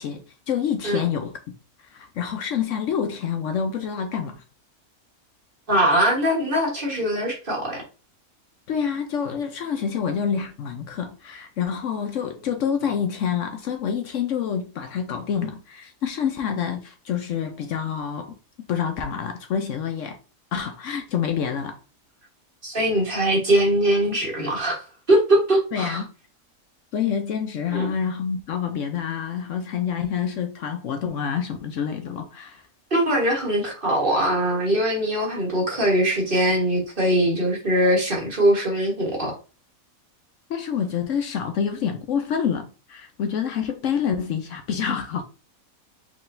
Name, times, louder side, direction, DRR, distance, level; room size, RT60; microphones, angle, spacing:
voice 1, 0.0-1.4 1.9-4.4 8.7-18.3 18.7-20.2 20.5-21.8 25.7-26.1 26.9-32.6 40.5-45.2, left 7 dB, 65° left, 0.9 m, -27 dB
voice 2, 5.7-7.8 22.6-24.8 25.1-26.0 27.7-27.9 32.9-39.3, right 1 dB, 40° right, 1.4 m, -21 dB
4.8 x 3.7 x 2.6 m
omnidirectional pair, 1.5 m